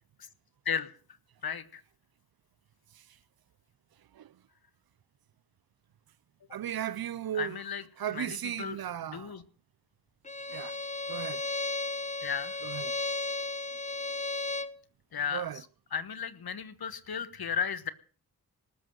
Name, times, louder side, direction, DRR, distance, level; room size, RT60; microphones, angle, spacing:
voice 1, 1.4-1.8 7.4-7.8 8.1-8.3 8.6-8.8 9.1-9.4 12.2-12.6 15.1-15.4 15.9-17.9, left 7 dB, 75° left, 1.4 m, -34 dB
voice 2, 6.5-9.4 10.5-10.8 11.1-11.5 12.6-13.0 15.3-15.7, right 10 dB, 70° right, 0.7 m, -37 dB
Bowed string instrument, 10.3-14.8, left 3 dB, 20° left, 1.0 m, -34 dB
19.0 x 7.9 x 7.7 m
wide cardioid pair, 80°, 37 cm